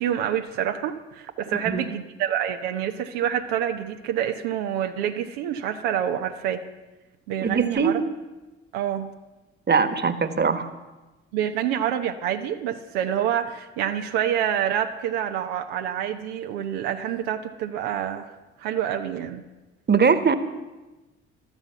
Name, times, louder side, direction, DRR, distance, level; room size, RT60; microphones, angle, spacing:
voice 1, 0.0-6.6 7.3-8.0 8.7-9.1 11.3-19.4, right 10 dB, 80° right, 5 dB, 1.0 m, -27 dB
voice 2, 7.4-8.0 9.7-10.7 19.9-20.4, right 5 dB, 30° right, 11 dB, 1.5 m, -21 dB
13.5 x 13.0 x 6.9 m, 1.1 s
hypercardioid pair, 50°, 33 cm